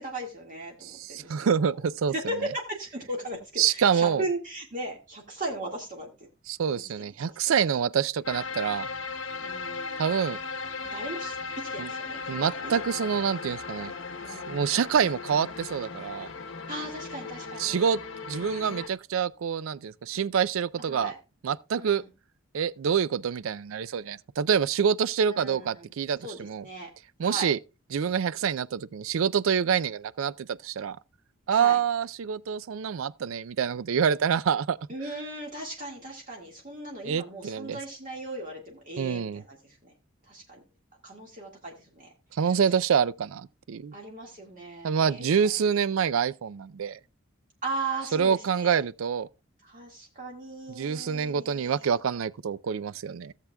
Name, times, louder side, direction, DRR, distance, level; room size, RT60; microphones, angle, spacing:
voice 1, 0.0-1.7 2.1-6.1 9.4-10.0 10.9-12.8 14.2-14.6 16.7-17.8 20.8-21.2 21.8-22.0 25.2-25.9 26.2-26.9 27.2-27.5 31.5-31.8 34.9-39.9 40.3-40.6 41.0-42.1 42.4-42.8 43.9-45.5 47.6-48.8 49.6-52.0, right 2 dB, 40° right, 1.9 m, -37 dB
voice 2, 0.8-2.1 3.6-4.2 6.5-8.9 10.0-10.4 11.8-11.9 12.3-13.9 14.5-16.3 17.6-18.0 18.3-21.1 21.4-22.0 22.5-26.7 27.2-27.6 27.9-31.0 31.5-34.8 37.0-37.8 39.0-39.4 42.3-43.9 44.8-47.0 48.1-49.3 50.7-53.3, right 7 dB, 75° right, 0.4 m, -26 dB
sound 1, 8.2-18.9, left 4 dB, 60° left, 0.9 m, -37 dB
16.5 x 7.4 x 2.3 m
head